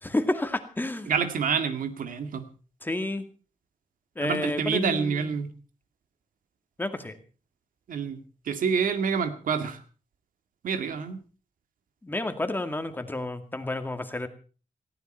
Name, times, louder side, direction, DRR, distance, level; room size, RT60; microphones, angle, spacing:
voice 1, 0.0-1.1 2.8-3.2 4.2-5.4 6.8-7.2 12.0-14.3, left 2 dB, 15° left, 8 dB, 2.1 m, -30 dB
voice 2, 1.1-2.4 4.2-5.5 7.9-8.2 8.5-9.8 10.6-11.2, right 6 dB, 90° right, 9 dB, 2.0 m, -27 dB
18.5 x 16.0 x 4.5 m, 0.38 s
wide cardioid pair, 120°, 14 cm